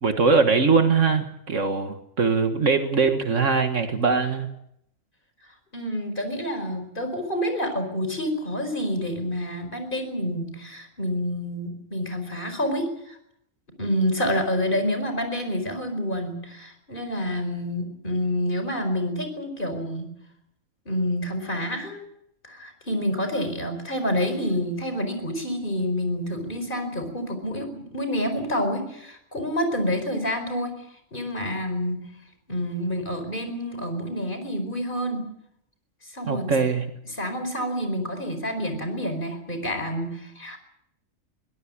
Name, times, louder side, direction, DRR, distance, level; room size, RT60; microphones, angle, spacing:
voice 1, 0.0-4.5 36.2-36.9, right 4 dB, 65° right, 7 dB, 1.9 m, -21 dB
voice 2, 5.7-13.2 13.8-20.1 20.8-22.1 22.4-30.8 31.1-32.1 32.5-35.3 36.1-36.5 37.1-40.6, equal, 40° left, 7 dB, 5.0 m, -28 dB
23.0 x 17.5 x 8.7 m, 0.75 s
omnidirectional pair, 1.4 m